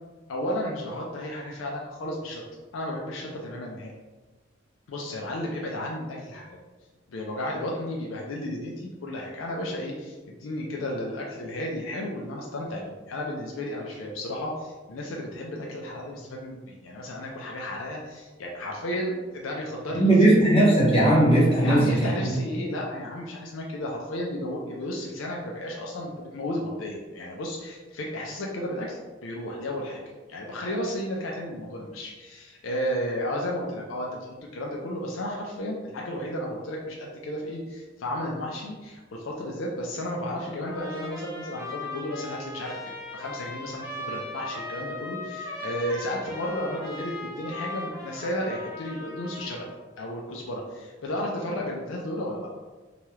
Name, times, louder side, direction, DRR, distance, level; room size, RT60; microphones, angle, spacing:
voice 1, 0.3-2.4 2.7-3.9 4.9-6.6 7.1-20.3 21.6-30.0 30.3-42.8 43.1-49.7 50.0-52.5, left 1 dB, 75° left, -1 dB, 0.4 m, -33 dB
voice 2, 20.0-22.1, right 1 dB, 30° left, -7 dB, 1.0 m, -18 dB
Trumpet, 40.6-49.7, left 2 dB, 15° right, 0.8 m, -38 dB
2.9 x 2.3 x 3.1 m, 1.3 s
head